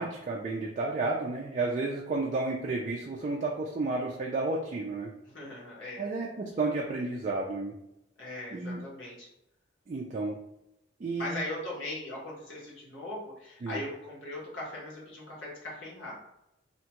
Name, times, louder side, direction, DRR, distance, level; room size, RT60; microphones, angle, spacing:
voice 1, 0.0-5.1 6.0-7.7 8.5-8.8 9.9-10.3 11.0-11.4 13.6-13.8, right 3 dB, 40° right, -2 dB, 0.3 m, -32 dB
voice 2, 5.2-6.1 8.2-9.3 11.2-16.2, left 1 dB, 75° left, -5 dB, 1.2 m, -39 dB
2.8 x 2.2 x 2.9 m, 0.85 s
head